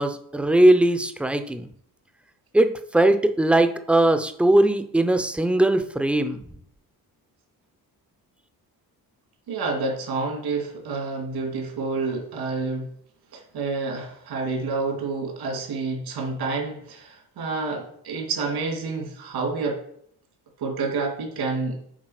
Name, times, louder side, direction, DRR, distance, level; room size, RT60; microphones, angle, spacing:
voice 1, 0.0-1.7 2.5-6.4, right 1 dB, 5° right, 8 dB, 0.4 m, -20 dB
voice 2, 9.5-12.9 13.3-19.8 20.6-21.8, right 3 dB, 80° right, 1 dB, 2.2 m, -29 dB
7.4 x 4.7 x 4.9 m, 0.67 s
cardioid pair, 140°, 37 cm